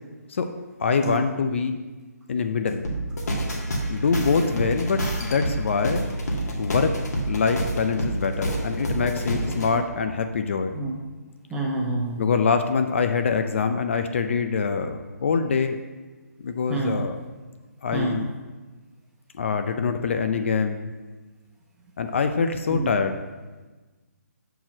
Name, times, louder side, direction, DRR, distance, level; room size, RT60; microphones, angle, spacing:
voice 1, 0.8-1.8 2.3-2.8 3.9-6.1 6.6-7.0 7.3-10.8 12.2-15.8 16.4-17.2 17.8-18.3 19.3-20.9 22.0-23.2, left 5 dB, 45° left, 7 dB, 0.5 m, -24 dB
sound 1, 2.8-9.7, right 1 dB, 70° left, 2.0 m, -28 dB
voice 2, 9.4-9.8 10.7-10.9 11.5-12.2 16.7-17.0 17.9-18.2 22.7-22.9, right 2 dB, 5° right, -3 dB, 0.8 m, -28 dB
5.9 x 4.6 x 6.3 m, 1.3 s
hypercardioid pair, 165°, 9 cm